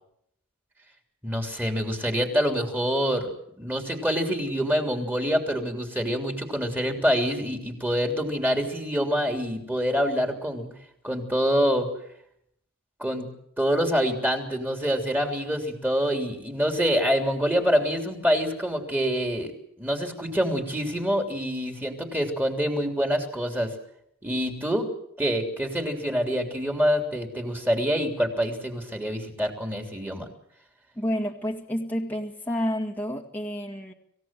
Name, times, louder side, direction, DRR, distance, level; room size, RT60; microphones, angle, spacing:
voice 1, 1.2-3.3 3.6-10.7 11.0-11.9 13.0-13.3 13.6-19.5 19.8-23.7 24.2-24.9 25.2-30.3, equal, 10° right, 4 dB, 3.3 m, -26 dB
voice 2, 31.0-33.9, equal, 10° left, 0 dB, 1.9 m, -29 dB
26.5 x 16.5 x 7.7 m, 0.73 s
head